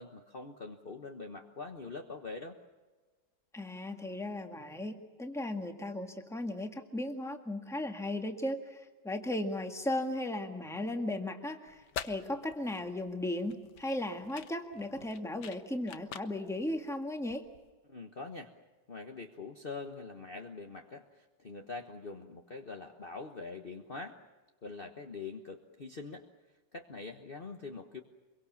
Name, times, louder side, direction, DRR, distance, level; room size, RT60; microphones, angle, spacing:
voice 1, 0.0-2.6 17.9-18.5 18.9-24.2 24.6-26.3 26.7-28.0, left 4 dB, 35° left, 4 dB, 1.3 m, -44 dB
voice 2, 3.5-17.4, left 1 dB, ahead, 4 dB, 1.7 m, -36 dB
sound 1, 11.7-17.7, left 8 dB, 65° left, 1.6 m, -47 dB
25.5 x 23.0 x 7.2 m, 1.3 s
omnidirectional pair, 2.0 m